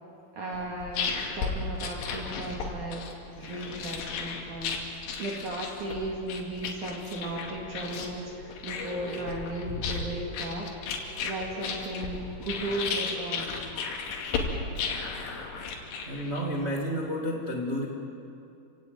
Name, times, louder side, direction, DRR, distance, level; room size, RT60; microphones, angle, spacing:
voice 1, 0.3-3.1 3.4-4.8 5.2-10.7 11.2-13.6, right 2 dB, 50° right, -2 dB, 3.1 m, -35 dB
sound 1, 0.5-16.6, left 5 dB, 85° left, 4.8 m, -34 dB
sound 2, 2.3-3.1 4.8-5.6 6.4-16.9, left 1 dB, 10° left, 3.1 m, -49 dB
voice 2, 13.7-14.3 16.0-17.9, equal, 80° right, -1 dB, 0.5 m, -32 dB
28.5 x 17.0 x 9.3 m, 2.7 s
omnidirectional pair, 5.5 m